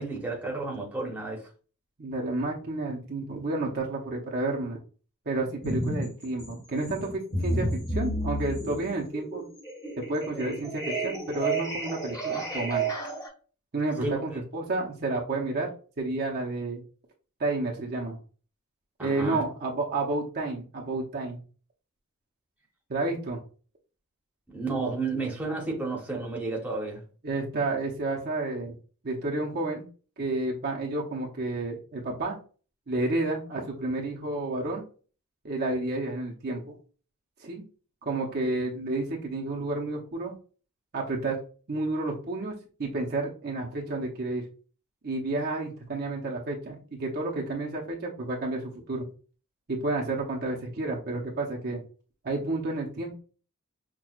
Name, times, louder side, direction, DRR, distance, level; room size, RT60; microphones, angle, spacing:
voice 1, 0.0-1.5 14.0-14.4 19.0-19.4 24.5-27.0, right 3 dB, 5° right, 1.0 m, -32 dB
voice 2, 2.0-4.8 5.3-9.4 10.0-12.9 13.7-15.7 16.0-16.8 17.4-18.2 19.0-21.4 22.9-23.4 27.2-28.7 29.0-29.8 30.2-32.4 32.9-34.8 35.4-36.7 37.4-37.6 38.0-40.3 40.9-41.4 41.7-44.4 45.0-49.1 49.7-51.8 52.2-53.2, right 2 dB, 45° right, 0.8 m, -30 dB
sound 1, 5.6-6.1 6.4-13.3, right 2 dB, 20° left, 1.1 m, -31 dB
6.0 x 2.3 x 2.4 m
head